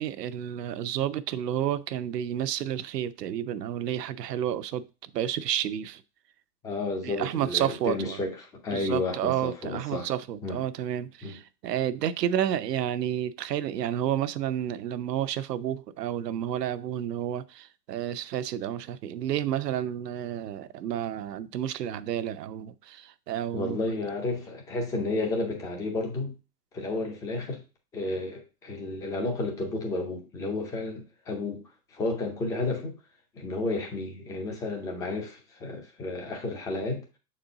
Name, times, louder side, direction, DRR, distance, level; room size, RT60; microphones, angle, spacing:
voice 1, 0.0-6.0 7.0-8.2 8.7-23.8, right 10 dB, 85° right, 0.8 m, -30 dB
voice 2, 6.6-10.1 10.4-10.6 11.2-11.4 23.5-26.3 26.7-27.6 27.9-31.6 31.9-32.9 33.4-37.0, left 2 dB, 10° left, 0.4 m, -32 dB
6.8 x 4.3 x 3.9 m
hypercardioid pair, 150°, 47 cm